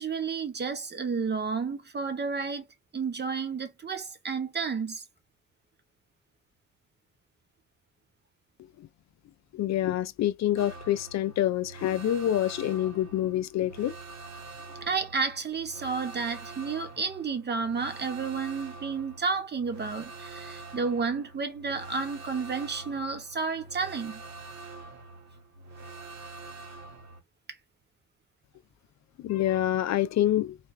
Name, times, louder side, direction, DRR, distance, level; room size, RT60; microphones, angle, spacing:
voice 1, 0.0-2.7 2.9-5.0 14.8-24.2, right 5 dB, 35° right, 1.3 m, -31 dB
voice 2, 9.5-13.9 29.2-30.6, left 12 dB, 60° left, 0.5 m, -27 dB
sound 1, 10.6-27.2, right 3 dB, 60° right, 1.8 m, -45 dB
4.1 x 2.3 x 3.2 m
cardioid pair, 90°, 30 cm